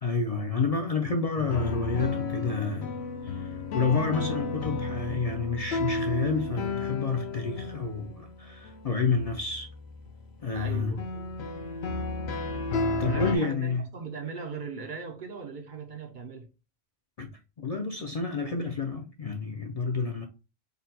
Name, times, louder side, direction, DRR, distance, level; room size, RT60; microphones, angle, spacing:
voice 1, 0.0-3.0 3.2-9.7 10.4-11.0 13.0-13.8 17.2-17.3 17.6-20.3, left 4 dB, 50° left, 0.5 m, -29 dB
sound 1, 1.4-13.4, left 3 dB, 75° left, 0.8 m, -33 dB
voice 2, 10.5-11.3 13.0-16.5, right 5 dB, 55° right, 0.7 m, -39 dB
3.9 x 2.2 x 4.0 m
omnidirectional pair, 1.1 m